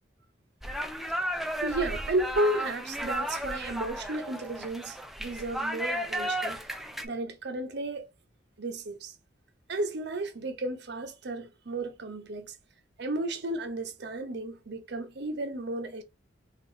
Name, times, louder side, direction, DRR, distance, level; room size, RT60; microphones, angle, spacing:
sound 1, 0.6-7.1, equal, ahead, 0.4 m, -34 dB
voice 1, 1.6-6.6 7.0-8.1 8.6-9.1 9.7-12.6 13.0-16.0, right 2 dB, 65° right, 0.7 m, -33 dB
3.7 x 2.5 x 2.6 m
head